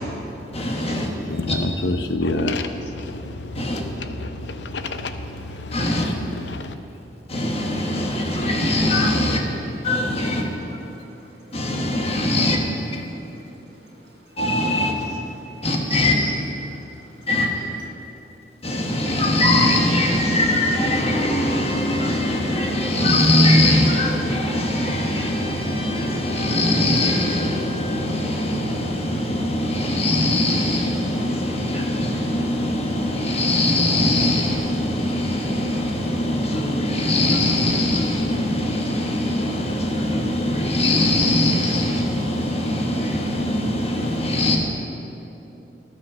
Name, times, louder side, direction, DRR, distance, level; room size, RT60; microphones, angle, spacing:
voice 1, 0.5-1.1 1.5-1.6 3.5-3.8 5.7-6.1 7.3-9.4 9.8-10.5 11.5-12.6 12.9-13.0 14.4-15.1 15.6-16.2 17.3-17.5 18.6-44.6, left 1 dB, 35° left, 1 dB, 1.4 m, -21 dB
voice 2, 1.3-6.1 6.5-6.7, left 2 dB, 80° left, 8 dB, 0.7 m, -28 dB
voice 3, 11.1-11.6 13.3-13.9 15.4-16.3 16.6-17.3, right 5 dB, 75° right, -2 dB, 2.0 m, -41 dB
12.0 x 7.6 x 6.2 m, 3.0 s
head